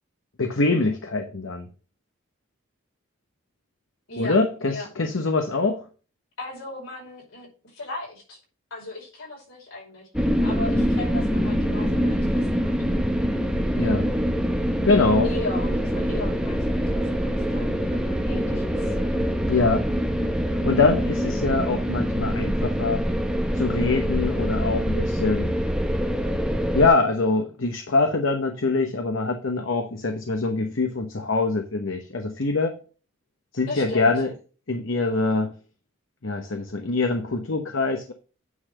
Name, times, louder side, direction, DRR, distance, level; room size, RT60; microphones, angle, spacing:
voice 1, 0.4-1.7 4.2-5.8 13.7-14.1 14.8-15.3 19.5-19.9 20.6-23.0 23.5-25.5 26.7-32.8 33.5-34.3 34.7-35.5 36.2-38.1, left 3 dB, 65° left, 5 dB, 1.0 m, -24 dB
voice 2, 4.1-4.9 6.4-8.4 8.7-13.0 15.2-19.0 33.7-34.1, left 2 dB, 85° left, -4 dB, 5.3 m, -37 dB
sound 1, 10.1-26.9, equal, 5° right, 0.8 m, -24 dB
9.4 x 4.0 x 6.5 m, 0.37 s
head